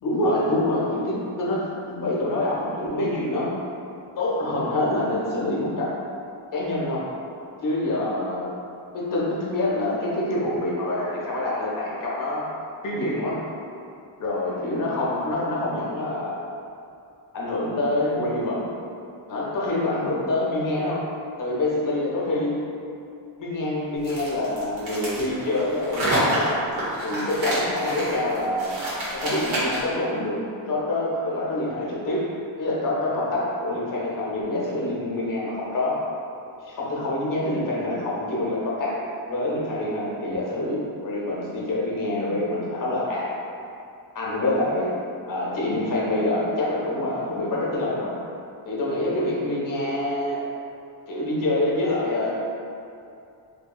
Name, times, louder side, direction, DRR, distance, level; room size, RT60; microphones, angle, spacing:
voice 1, 0.0-3.6 4.2-5.9 6.5-7.1 7.6-8.5 8.9-12.5 12.8-13.4 14.2-16.4 17.3-18.7 19.3-21.1 21.4-22.6 23.4-26.6 27.0-28.8 29.1-32.3 32.6-36.1 36.6-39.0 39.3-43.3 44.1-44.9 45.3-48.2 48.6-50.5 51.1-52.3, left 1 dB, 45° left, -5 dB, 0.6 m, -26 dB
sound 1, 24.0-29.9, right 1 dB, 90° right, 1.1 m, -28 dB
2.7 x 2.7 x 2.3 m, 2.6 s
wide cardioid pair, 135°, 48 cm